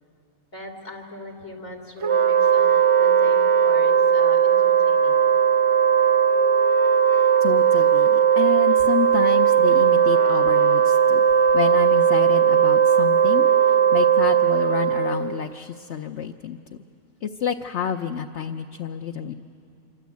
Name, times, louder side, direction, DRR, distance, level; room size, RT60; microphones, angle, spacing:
voice 1, 0.5-5.2, left 1 dB, 90° left, 1 dB, 3.7 m, -40 dB
Wind instrument woodwind instrument, 2.0-15.4, right 8 dB, 40° right, 0.4 m, -18 dB
voice 2, 7.4-11.2 11.5-16.6 17.2-19.3, left 8 dB, 60° left, 4 dB, 1.0 m, -29 dB
27.0 x 24.0 x 8.4 m, 2.7 s
omnidirectional pair, 1.4 m